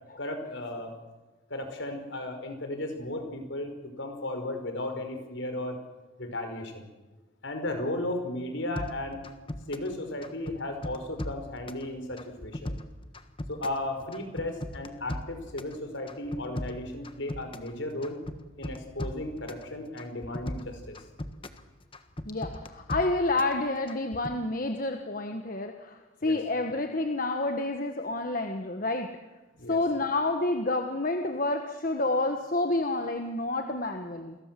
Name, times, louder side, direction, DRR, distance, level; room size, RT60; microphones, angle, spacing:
voice 1, 0.2-0.9 1.5-5.8 6.2-6.9 7.4-9.3 9.7-12.8 13.5-18.2 18.6-21.0 26.2-26.4 29.5-29.8, left 1 dB, 65° left, 6 dB, 5.2 m, -35 dB
sound 1, 8.8-9.9 10.2-11.8 12.2-13.8 14.1-15.7 16.1-17.7 18.0-19.7 20.0-21.6 21.9-23.6 23.9-24.4, left 1 dB, 25° left, 1.4 m, -37 dB
voice 2, 22.2-29.1 29.7-34.4, left 2 dB, 40° left, 5 dB, 1.4 m, -29 dB
29.5 x 22.0 x 7.6 m, 1.2 s
head